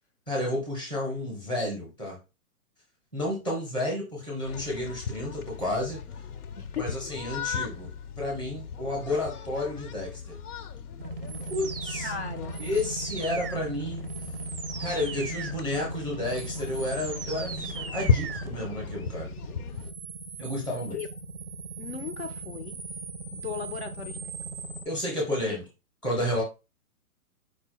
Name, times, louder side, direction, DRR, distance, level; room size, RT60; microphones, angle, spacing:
voice 1, 0.3-2.2 3.1-6.0 6.7-7.9 8.2-10.4 11.5-12.1 12.6-14.1 14.8-19.3 20.4-21.0 24.8-25.6 26.0-26.4, left 1 dB, 10° left, 0.6 m, -31 dB
sound 1, 4.4-19.9, left 6 dB, 85° left, 0.8 m, -36 dB
voice 2, 6.6-6.9 12.0-12.6 20.9-21.1 21.8-22.8 23.3-24.2 25.5-25.6, left 7 dB, 50° left, 0.5 m, -36 dB
sound 2, 11.0-24.8, right 3 dB, 40° right, 0.4 m, -37 dB
4.8 x 2.2 x 4.4 m
hypercardioid pair, 175°, 44 cm